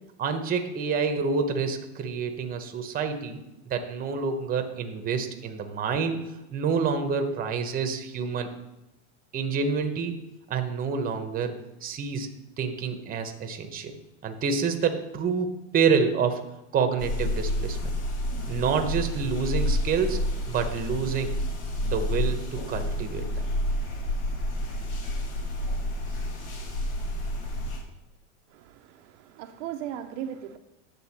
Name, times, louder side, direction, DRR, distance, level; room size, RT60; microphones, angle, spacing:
voice 1, 0.2-3.4 3.7-6.2 6.5-8.5 9.3-10.1 10.5-11.5 11.8-12.3 12.6-14.0 14.2-16.4 16.7-17.8 18.5-20.2 20.5-21.3 21.8-23.3, right 5 dB, 20° right, 6 dB, 0.9 m, -27 dB
sound 1, 17.0-27.8, left 1 dB, 80° left, 3.0 m, -29 dB
voice 2, 28.5-30.6, right 10 dB, 60° right, 6 dB, 0.7 m, -37 dB
9.5 x 3.8 x 7.2 m, 0.96 s
supercardioid pair, 145°, 40 cm